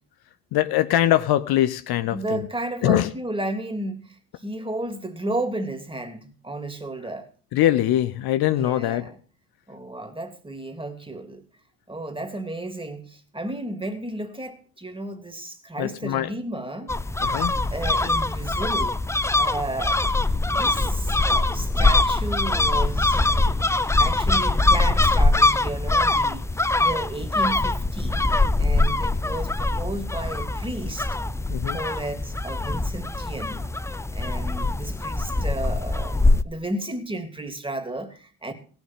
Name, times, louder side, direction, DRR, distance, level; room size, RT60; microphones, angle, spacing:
voice 1, 0.5-2.5 2.8-3.1 7.5-9.1 15.8-16.3 17.2-17.6 31.5-31.8, left 13 dB, 55° left, 0.9 m, -22 dB
voice 2, 2.1-7.3 8.5-9.2 9.7-11.4 11.9-16.9 17.7-19.0 19.4-23.6 24.0-28.2 28.6-31.1 31.7-33.7 34.1-38.5, right 1 dB, 10° right, 2.9 m, -33 dB
sound 1, 16.9-36.4, left 2 dB, 5° left, 0.6 m, -22 dB
17.0 x 7.1 x 7.5 m
hypercardioid pair, 55°, 44 cm